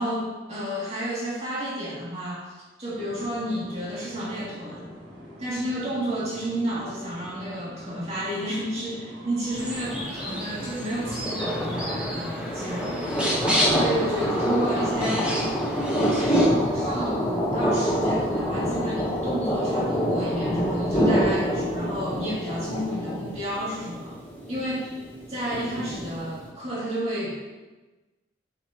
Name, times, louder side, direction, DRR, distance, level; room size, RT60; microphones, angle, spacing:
voice 1, 0.0-4.9 5.4-13.0 13.7-15.3 15.9-24.2 24.5-25.0 25.3-27.4, right 1 dB, 35° right, -8 dB, 2.8 m, -31 dB
sound 1, 2.9-20.6, equal, 60° right, 2.6 m, -44 dB
sound 2, 9.5-26.5, equal, 10° left, 1.3 m, -27 dB
sound 3, 9.6-16.5, equal, 5° right, 1.2 m, -31 dB
7.9 x 7.3 x 3.1 m, 1.2 s
head